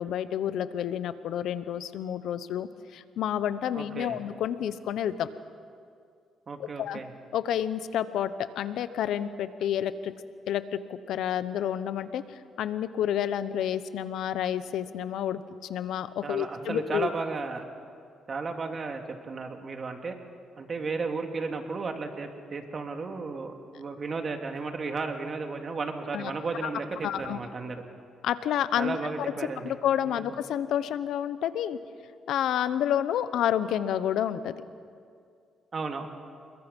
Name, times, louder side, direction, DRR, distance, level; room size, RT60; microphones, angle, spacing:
voice 1, 0.0-5.3 6.8-7.0 7.3-10.1 10.5-15.4 15.7-17.1 26.1-26.3 27.0-27.4 28.2-29.0 29.6-31.8 32.3-34.5, left 10 dB, 80° left, 13 dB, 0.9 m, -29 dB
voice 2, 3.7-4.2 6.5-7.1 16.2-17.7 18.3-20.1 20.6-27.8 28.8-29.7 30.0-30.3 35.7-36.1, right 4 dB, 40° right, 4 dB, 2.4 m, -34 dB
28.0 x 22.0 x 5.4 m, 2.3 s
cardioid pair, 90°, 0 cm